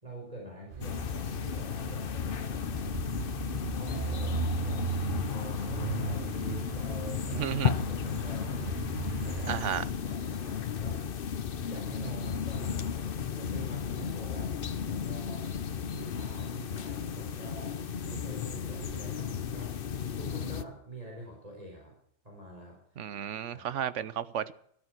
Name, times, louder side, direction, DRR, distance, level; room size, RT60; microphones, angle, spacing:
voice 1, 0.0-2.9 3.7-4.8 5.2-7.5 7.8-8.8 9.2-11.0 11.7-15.5 15.8-21.9 22.2-23.1 23.4-23.7, right 2 dB, 30° right, 4.4 m, -46 dB
sound 1, 0.7-9.8, right 6 dB, 50° right, 0.8 m, -37 dB
sound 2, 0.8-20.6, left 7 dB, 50° left, 0.9 m, -34 dB
voice 2, 7.3-7.7 9.5-9.8 23.0-24.5, right 9 dB, 70° right, 1.2 m, -33 dB
14.0 x 12.5 x 6.0 m
omnidirectional pair, 1.3 m